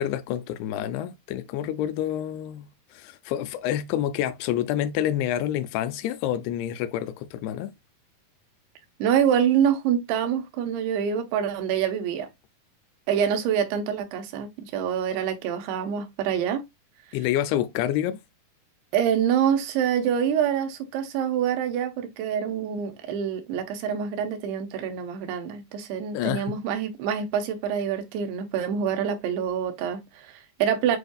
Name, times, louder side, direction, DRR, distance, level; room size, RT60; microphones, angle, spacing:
voice 1, 0.0-7.7 17.1-18.2 26.1-26.6, left 11 dB, 90° left, 2.6 m, -28 dB
voice 2, 9.0-12.3 13.1-16.7 18.9-31.0, right 8 dB, 85° right, 2.9 m, -26 dB
7.9 x 2.6 x 2.3 m
omnidirectional pair, 4.5 m